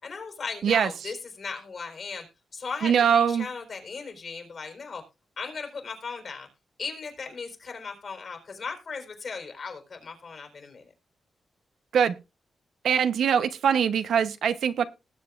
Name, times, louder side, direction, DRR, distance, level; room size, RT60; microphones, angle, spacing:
voice 1, 0.0-2.2 2.5-5.0 5.4-6.5 6.8-10.9, left 5 dB, 55° left, 4.2 m, -37 dB
voice 2, 2.8-3.5 11.9-12.1 12.8-14.8, right 7 dB, 85° right, 0.9 m, -22 dB
19.5 x 7.8 x 2.5 m
cardioid pair, 80°, 0 cm